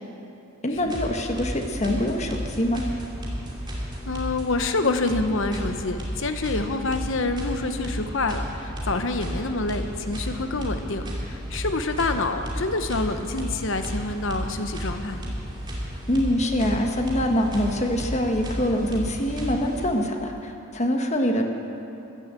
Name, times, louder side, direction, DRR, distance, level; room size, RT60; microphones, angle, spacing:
voice 1, 0.6-2.8 16.1-21.4, equal, 35° left, 3 dB, 1.3 m, -24 dB
sound 1, 0.8-20.2, equal, 20° right, 2.9 m, -33 dB
voice 2, 4.1-15.3 21.2-21.4, left 3 dB, 65° left, 7 dB, 1.0 m, -27 dB
14.5 x 11.0 x 8.2 m, 2.8 s
head